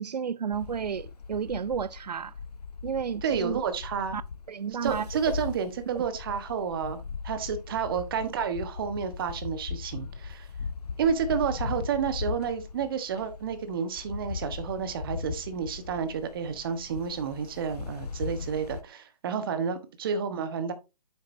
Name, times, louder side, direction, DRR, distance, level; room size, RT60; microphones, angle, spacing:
voice 1, 0.0-2.3 2.8-3.6 4.1-4.2 4.5-5.1 5.9-6.0, right 7 dB, 90° right, 0.4 m, -32 dB
sound 1, 0.5-18.8, left 5 dB, 75° left, 0.9 m, -39 dB
voice 2, 3.2-4.2 4.7-10.5 11.0-20.7, right 6 dB, 35° right, 1.2 m, -30 dB
8.8 x 7.1 x 2.7 m
hypercardioid pair, 150°, 20 cm